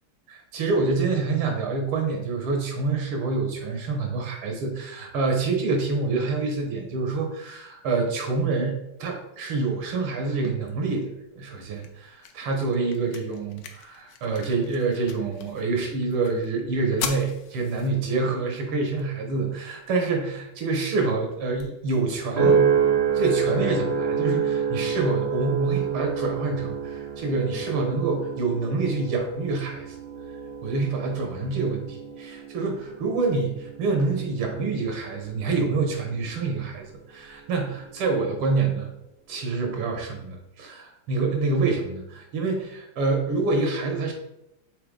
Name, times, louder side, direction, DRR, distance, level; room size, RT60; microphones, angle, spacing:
voice 1, 0.3-22.6 23.1-30.0 30.6-38.9 39.3-44.1, right 3 dB, 90° right, 3 dB, 2.0 m, -27 dB
sound 1, 11.2-23.2, left 7 dB, 80° left, 0.8 m, -43 dB
sound 2, 22.4-36.8 37.4-37.8, right 6 dB, 30° right, 1.7 m, -28 dB
6.6 x 3.8 x 3.8 m, 0.84 s
omnidirectional pair, 2.3 m